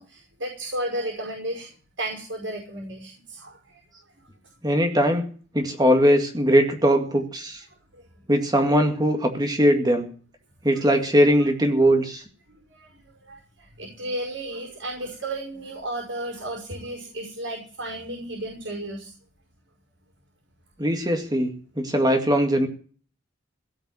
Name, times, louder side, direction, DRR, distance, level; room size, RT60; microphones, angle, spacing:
voice 1, 0.0-1.7 2.0-3.8 7.9-8.0 12.5-12.9 13.2-19.1 20.9-21.0, right 1 dB, 85° right, 0 dB, 5.3 m, -33 dB
voice 2, 4.6-5.2 5.5-7.6 8.3-10.1 10.6-12.2 20.8-22.7, equal, 20° right, 4 dB, 2.0 m, -20 dB
17.5 x 5.9 x 9.8 m, 0.41 s
head